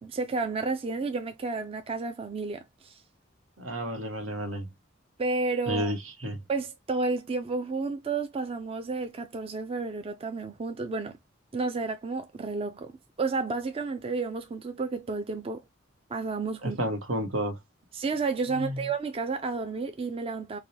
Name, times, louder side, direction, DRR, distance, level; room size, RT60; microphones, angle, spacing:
voice 1, 0.0-3.0 5.2-5.9 6.5-11.2 11.5-12.9 13.2-15.6 16.1-16.8 17.9-20.6, right 4 dB, 30° right, 0.4 m, -31 dB
voice 2, 3.6-4.7 5.7-6.0 6.2-6.4 16.6-17.6 18.5-18.8, equal, 85° right, 1.1 m, -31 dB
4.8 x 2.2 x 2.7 m
head